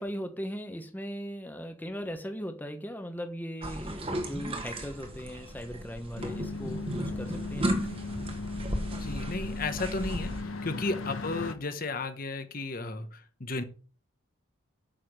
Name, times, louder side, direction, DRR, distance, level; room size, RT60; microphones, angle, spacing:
voice 1, 0.0-7.8 10.6-10.9, equal, 10° left, 1.1 m, -39 dB
sound 1, 3.6-10.4, equal, 25° right, 1.6 m, -35 dB
sound 2, 6.2-11.5, left 3 dB, 75° left, 1.6 m, -37 dB
voice 2, 9.0-13.6, left 3 dB, 40° left, 1.1 m, -34 dB
8.9 x 6.7 x 6.5 m
head